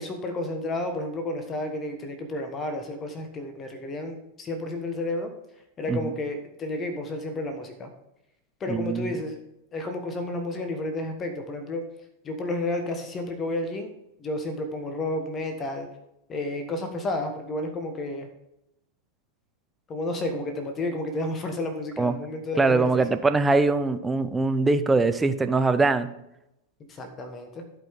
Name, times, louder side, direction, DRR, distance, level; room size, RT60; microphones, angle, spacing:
voice 1, 0.0-5.3 5.8-7.9 8.6-9.4 9.7-11.9 12.2-13.9 14.2-15.9 16.3-18.3 19.9-23.0 26.9-27.6, left 1 dB, 25° left, 6 dB, 1.4 m, -31 dB
voice 2, 8.7-9.2 22.0-22.1 22.6-26.1, right 3 dB, 10° right, 10 dB, 0.7 m, -22 dB
16.0 x 5.4 x 3.6 m, 0.85 s
figure-of-eight pair, 90°, 0 cm